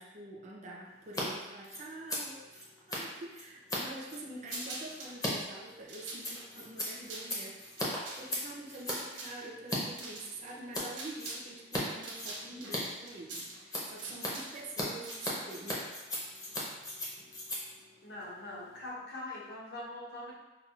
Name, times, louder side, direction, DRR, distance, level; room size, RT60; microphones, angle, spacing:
voice 1, 0.0-15.9, right 2 dB, 35° right, -2 dB, 0.5 m, -46 dB
Scissors, 1.0-1.2 1.5-9.8 10.1-10.9 11.2-11.8 12.1-18.9, left 1 dB, 20° left, 0.6 m, -38 dB
sound 1, 4.5-5.2 5.7-11.5 11.8-15.5, right 2 dB, 80° right, 0.8 m, -45 dB
voice 2, 18.0-20.3, left 1 dB, 55° left, -5 dB, 0.9 m, -42 dB
5.5 x 2.2 x 2.3 m, 1.1 s
head